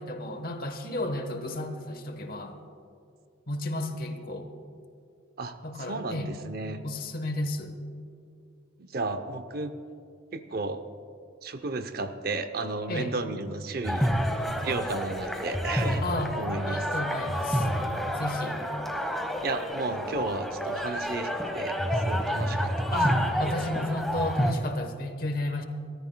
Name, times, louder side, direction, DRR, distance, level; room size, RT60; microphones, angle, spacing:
voice 1, 0.0-2.6 3.5-4.5 5.6-6.3 6.8-7.8 12.9-13.1 16.0-16.4 16.7-17.7 18.1-18.6 22.9-25.6, left 1 dB, 45° left, 7 dB, 1.1 m, -33 dB
voice 2, 5.4-6.8 8.8-9.7 10.3-10.8 11.4-14.1 14.6-16.0 16.3-16.9 19.4-21.8 22.1-22.9, right 3 dB, 50° right, 10 dB, 0.6 m, -33 dB
sound 1, 13.8-24.5, equal, ahead, 1.0 m, -29 dB
27.5 x 13.5 x 2.2 m, 2.5 s
head